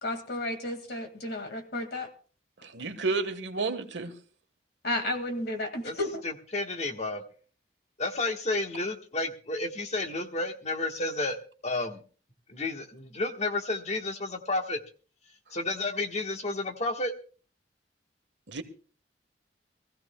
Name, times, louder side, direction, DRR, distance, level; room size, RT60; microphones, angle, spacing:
voice 1, 0.0-2.1 4.8-6.2, left 1 dB, 60° left, 2.0 m, -32 dB
voice 2, 2.7-4.1 18.5-18.6, right 3 dB, 75° right, 1.4 m, -31 dB
voice 3, 6.2-7.2 8.0-11.4 11.6-12.0 12.5-14.8 15.5-17.1, left 2 dB, 40° left, 1.3 m, -31 dB
23.0 x 15.0 x 2.2 m
head